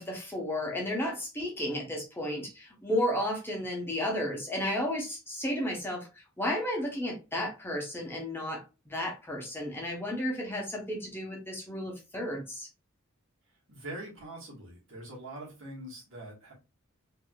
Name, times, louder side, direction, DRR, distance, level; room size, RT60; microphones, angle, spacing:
voice 1, 0.0-6.1 6.4-12.7, left 1 dB, 10° left, 0.8 m, -33 dB
voice 2, 13.7-16.5, right 1 dB, 65° right, 1.3 m, -43 dB
3.3 x 2.6 x 2.2 m
head